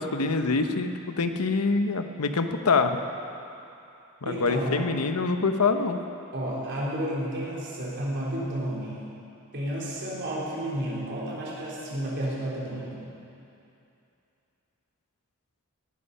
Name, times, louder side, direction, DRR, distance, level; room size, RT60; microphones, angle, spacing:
voice 1, 0.0-3.0 4.2-6.0, left 4 dB, 85° left, 7 dB, 0.9 m, -25 dB
voice 2, 4.2-4.8 6.3-8.9 9.5-13.0, right 1 dB, 55° right, -6 dB, 4.0 m, -31 dB
18.5 x 11.0 x 5.5 m, 2.7 s
head